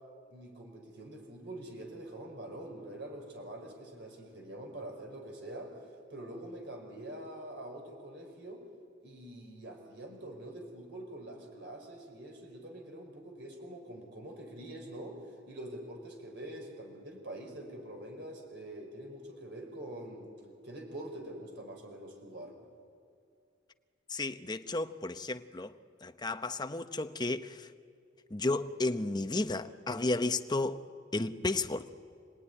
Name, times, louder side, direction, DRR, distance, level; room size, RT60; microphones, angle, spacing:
voice 1, 0.3-5.7 6.1-8.6 9.0-15.2 15.5-20.3 20.6-22.5, right 1 dB, 65° right, 5.0 m, -45 dB
voice 2, 24.1-25.7 26.0-27.7 28.3-30.8 31.1-31.9, left 2 dB, 20° left, 0.8 m, -33 dB
27.0 x 19.0 x 9.9 m
head